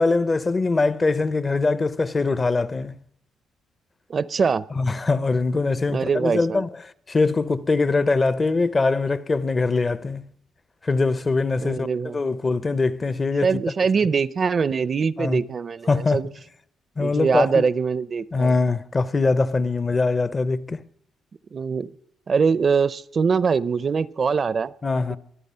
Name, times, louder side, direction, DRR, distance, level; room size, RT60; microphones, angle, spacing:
voice 1, 0.0-2.9 4.8-6.7 7.1-10.3 10.8-13.5 15.2-15.4 15.9-16.2 17.0-17.6 18.3-20.8 24.8-25.2, left 3 dB, 30° left, 0.6 m, -22 dB
voice 2, 4.1-4.6 5.9-6.6 11.6-12.2 13.4-16.3 17.0-18.5 21.5-21.9 22.3-24.7, right 5 dB, 40° right, 0.5 m, -23 dB
22.5 x 8.0 x 5.6 m
cardioid pair, 90°, 0 cm